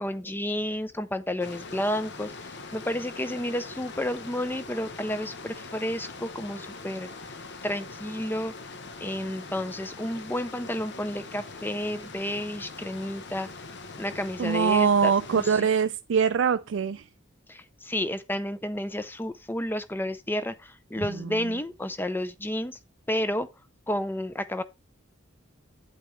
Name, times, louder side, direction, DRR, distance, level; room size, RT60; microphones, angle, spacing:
voice 1, 0.0-7.1 7.6-8.5 9.0-13.5 14.0-15.7 17.5-22.8 23.1-23.5 23.9-24.6, left 1 dB, 10° left, 0.6 m, -31 dB
sound 1, 1.4-15.5, left 3 dB, 60° left, 0.9 m, -42 dB
voice 2, 14.4-17.1 21.1-21.5, right 6 dB, 65° right, 0.4 m, -24 dB
8.7 x 8.2 x 3.2 m
head